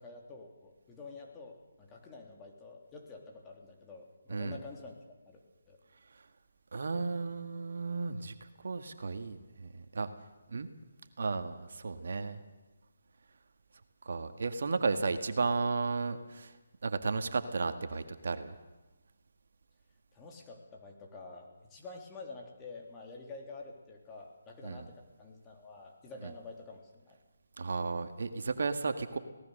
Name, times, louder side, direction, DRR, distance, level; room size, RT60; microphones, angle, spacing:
voice 1, 0.0-4.9 5.3-5.4 5.7-5.8 20.1-27.2, left 3 dB, 15° left, 1 dB, 3.2 m, -48 dB
voice 2, 6.7-10.1 10.5-10.7 11.2-12.4 14.0-16.6 16.8-18.5 24.6-24.9 26.2-26.3 27.6-29.2, right 4 dB, 65° right, 8 dB, 1.7 m, -34 dB
25.0 x 18.0 x 6.7 m, 1.1 s
figure-of-eight pair, 155°, 0 cm